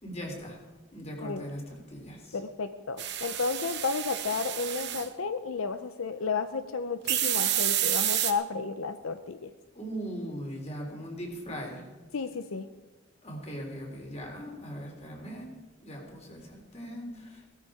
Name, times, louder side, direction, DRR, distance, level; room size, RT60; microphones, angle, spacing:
voice 1, 0.0-0.6 0.9-2.4 9.7-11.9 13.2-15.5 15.8-17.5, equal, 30° left, 1 dB, 3.7 m, -39 dB
voice 2, 2.3-9.5 12.1-12.7, left 4 dB, 80° left, 10 dB, 0.6 m, -32 dB
sound 1, 3.0-5.1 7.1-8.3, right 12 dB, 55° right, 1.2 m, -29 dB
17.0 x 13.0 x 4.9 m, 1.2 s
head